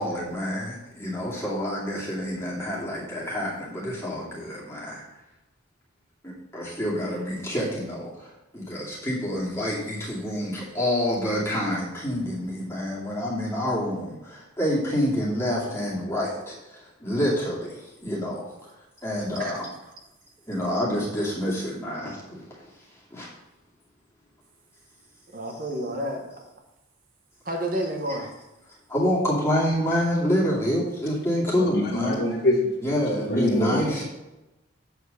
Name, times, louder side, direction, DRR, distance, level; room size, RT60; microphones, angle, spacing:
voice 1, 0.0-5.0 6.2-17.7 18.0-18.5 19.0-19.7 20.5-22.4 23.1-23.3 28.9-32.2 32.8-34.0, equal, 15° left, -6 dB, 2.3 m, -27 dB
voice 2, 25.3-26.5 27.4-28.3, right 1 dB, 45° right, 2 dB, 1.3 m, -30 dB
voice 3, 31.6-32.7 33.3-34.0, left 1 dB, 55° left, -6 dB, 1.6 m, -24 dB
8.1 x 4.7 x 6.5 m, 0.98 s
head